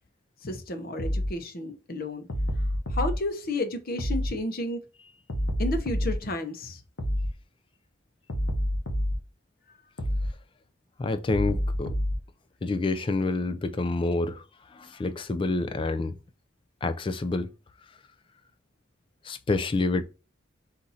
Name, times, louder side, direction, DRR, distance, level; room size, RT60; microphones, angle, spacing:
voice 1, 0.4-2.3 2.9-4.8 5.6-6.8, left 1 dB, 50° left, 0.7 m, -32 dB
sound 1, 1.0-1.3 2.3-3.1 4.0-4.3 5.3-6.2 7.0-7.3 8.3-9.2 10.0-10.3 11.3-12.2, equal, 85° left, 0.9 m, -27 dB
voice 2, 11.0-11.9 12.6-14.4 14.7-16.2 16.8-17.5 19.2-20.0, left 3 dB, 25° left, 0.3 m, -28 dB
4.0 x 2.5 x 4.1 m
head